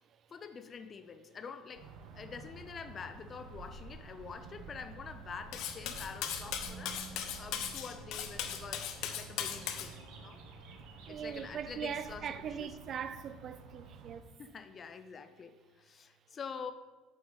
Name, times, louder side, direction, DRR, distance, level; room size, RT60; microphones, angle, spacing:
voice 1, 0.3-1.9 2.1-7.0 7.4-10.4 11.1-12.7 14.4-16.7, left 6 dB, 25° left, 0.5 m, -46 dB
sound 1, 1.7-14.2, right 4 dB, 65° right, 1.0 m, -50 dB
Cutlery silverware, 5.5-9.9, left 9 dB, 55° left, 0.8 m, -38 dB
voice 2, 10.6-14.3, right 8 dB, 35° right, 0.4 m, -41 dB
8.5 x 7.8 x 4.0 m
cardioid pair, 160°, 0 cm